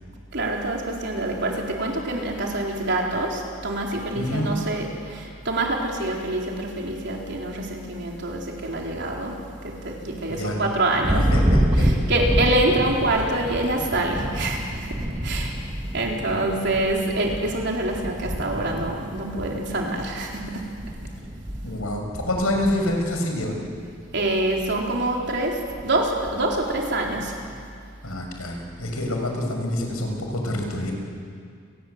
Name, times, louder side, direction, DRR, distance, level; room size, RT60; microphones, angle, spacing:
voice 1, 0.3-9.4 9.6-11.3 11.7-15.5 15.9-20.7 24.1-27.4, right 2 dB, 55° right, -1 dB, 4.2 m, -26 dB
voice 2, 4.1-4.5 10.3-10.6 11.1-11.9 21.6-23.6 28.0-30.9, left 1 dB, 90° left, 2 dB, 6.0 m, -27 dB
Thunder, 11.0-23.9 24.2-24.8 25.1-26.6, equal, 20° right, 1.4 m, -28 dB
30.0 x 20.0 x 8.2 m, 2.2 s
head